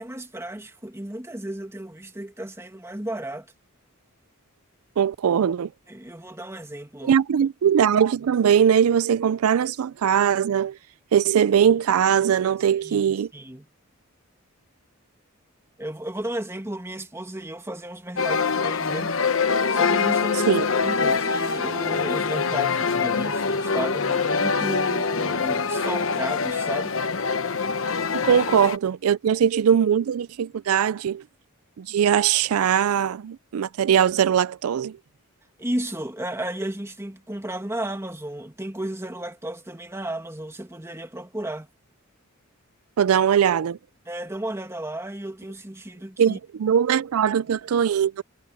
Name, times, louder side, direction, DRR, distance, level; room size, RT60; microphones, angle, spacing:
voice 1, 0.0-3.5 5.9-7.2 12.8-13.7 15.8-19.2 19.7-27.0 28.3-28.4 29.3-29.4 35.6-41.7 44.1-46.4, right 1 dB, 15° right, 2.0 m, -33 dB
voice 2, 5.0-5.7 7.0-10.8 11.1-13.3 20.5-20.7 28.1-31.2 31.8-35.0 43.0-43.8 46.2-48.2, right 8 dB, 85° right, 0.4 m, -21 dB
sound 1, 18.2-28.8, left 5 dB, 65° left, 1.1 m, -24 dB
head